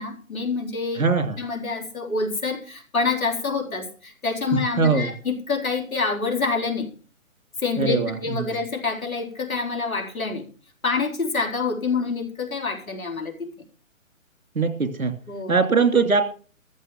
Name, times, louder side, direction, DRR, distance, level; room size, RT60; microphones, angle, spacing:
voice 1, 0.0-1.0 1.4-6.9 7.6-10.4 10.8-13.5 15.3-15.5, left 4 dB, 85° left, 3 dB, 4.4 m, -27 dB
voice 2, 1.0-1.4 4.5-5.1 7.8-8.4 14.5-15.1 15.5-16.2, right 4 dB, 85° right, 7 dB, 2.9 m, -21 dB
14.0 x 6.3 x 8.9 m, 0.41 s
figure-of-eight pair, 150°, 41 cm